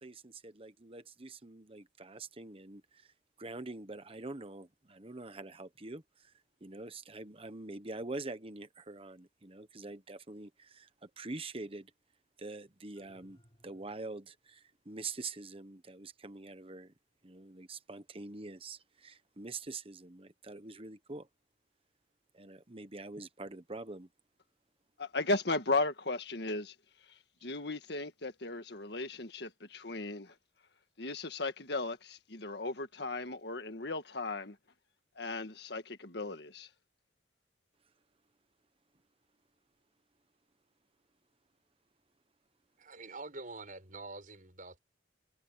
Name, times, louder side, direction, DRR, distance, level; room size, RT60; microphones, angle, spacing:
voice 1, 0.0-3.1 3.4-6.3 6.6-11.9 12.4-16.9 17.2-21.3 22.3-24.1, right 3 dB, 30° right, 1.2 m, -45 dB
sound 1, 13.0-14.4, equal, 30° left, 5.7 m, -66 dB
voice 2, 25.0-26.7 27.1-27.2 27.4-30.3 31.0-34.6 35.1-36.7, left 3 dB, 60° left, 1.8 m, -36 dB
voice 3, 42.8-44.8, right 3 dB, 45° right, 7.0 m, -46 dB
head